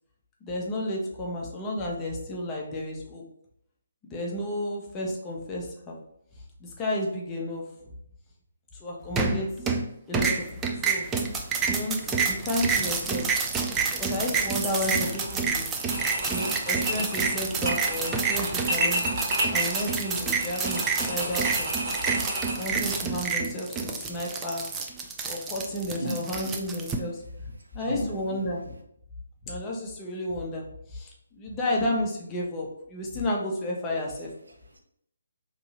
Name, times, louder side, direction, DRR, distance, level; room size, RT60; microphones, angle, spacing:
voice 1, 0.4-3.2 4.1-6.0 6.6-7.6 8.8-9.7 10.1-11.1 11.7-13.3 14.0-15.7 16.3-19.0 19.5-21.9 22.6-24.7 25.3-28.8 29.4-31.1 31.4-34.3, left 1 dB, 15° left, 0.7 m, -32 dB
sound 1, 9.2-9.9 10.1-26.9, right 5 dB, 10° right, 0.4 m, -28 dB
sound 2, 15.1-15.4 15.8-23.0, equal, 40° right, 1.2 m, -32 dB
voice 2, 27.6-28.1 34.5-34.8, right 1 dB, 70° right, 0.8 m, -36 dB
3.0 x 2.7 x 4.0 m
figure-of-eight pair, 140°, 0 cm